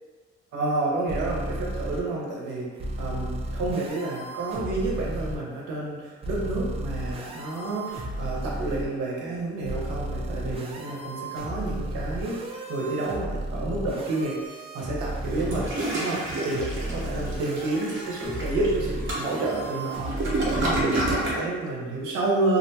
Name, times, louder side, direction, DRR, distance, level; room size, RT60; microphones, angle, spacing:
voice 1, 0.5-22.6, right 2 dB, 85° right, -3 dB, 0.7 m, -30 dB
sound 1, 1.1-2.0 2.8-5.4 6.2-8.8 9.6-20.8, right 1 dB, 20° right, 0.4 m, -34 dB
Toilet flush, 15.3-21.5, right 2 dB, 40° right, 0.8 m, -29 dB
2.5 x 2.2 x 2.7 m, 1.5 s
cardioid pair, 90°, 30 cm